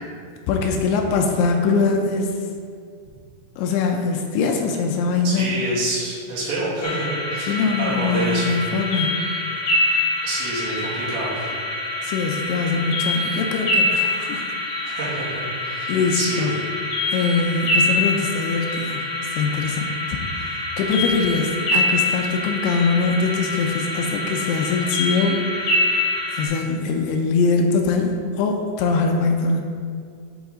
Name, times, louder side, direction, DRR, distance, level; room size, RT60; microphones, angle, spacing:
voice 1, 0.5-2.4 3.6-5.6 7.4-9.3 12.0-14.5 15.9-16.6 17.1-19.0 19.3-29.6, left 4 dB, 85° left, 3 dB, 2.4 m, -22 dB
voice 2, 5.2-8.6 10.2-11.5 14.8-16.5, right 1 dB, 80° right, -8 dB, 4.1 m, -27 dB
sound 1, 6.8-26.5, left 2 dB, 60° left, 1.8 m, -25 dB
10.0 x 4.5 x 3.8 m, 2.2 s
omnidirectional pair, 5.1 m